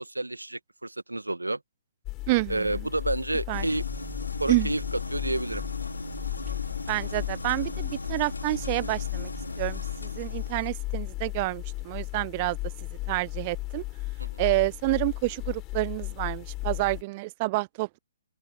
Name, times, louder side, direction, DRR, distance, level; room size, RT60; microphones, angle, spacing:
voice 1, 0.0-1.6 2.5-3.8 4.4-5.6 14.2-14.4, right 2 dB, 90° right, 1.6 m, -30 dB
sound 1, 2.1-17.0, left 20 dB, 25° left, 4.2 m, -35 dB
voice 2, 2.3-2.7 3.5-3.7 4.5-4.7 6.9-9.3 9.6-12.6 13.1-13.8 14.4-18.0, right 23 dB, 30° right, 0.3 m, -28 dB
sound 2, 3.5-10.7, left 3 dB, 85° left, 2.7 m, -36 dB
open air
figure-of-eight pair, 135°, 0 cm